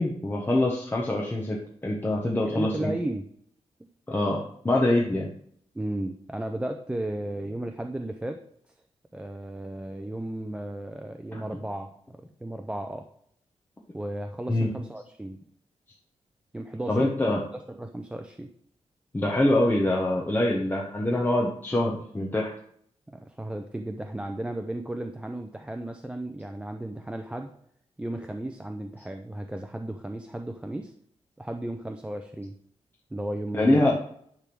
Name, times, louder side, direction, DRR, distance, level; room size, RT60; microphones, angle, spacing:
voice 1, 0.0-2.9 4.1-5.3 11.3-11.4 14.5-14.7 16.9-17.5 19.1-22.5 33.5-33.9, left 1 dB, 15° left, -2 dB, 1.0 m, -24 dB
voice 2, 2.4-3.3 5.7-8.4 9.1-13.1 13.9-15.4 16.5-17.1 17.7-18.5 23.1-27.5 28.0-30.9 31.4-32.6 33.1-34.0, right 1 dB, 10° right, 5 dB, 0.5 m, -34 dB
10.0 x 3.5 x 6.0 m, 0.67 s
wide cardioid pair, 165°, 11 cm